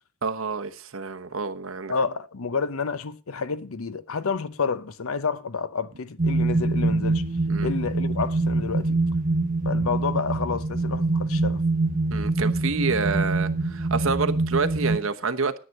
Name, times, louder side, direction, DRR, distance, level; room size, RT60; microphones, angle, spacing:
voice 1, 0.2-1.9 7.5-7.7 12.1-15.6, right 4 dB, 65° right, 1.0 m, -28 dB
voice 2, 1.9-7.2 7.6-9.0 9.6-11.6, left 5 dB, 75° left, 0.7 m, -29 dB
sound 1, 6.2-15.0, right 2 dB, 40° right, 1.0 m, -24 dB
9.9 x 9.6 x 6.5 m
head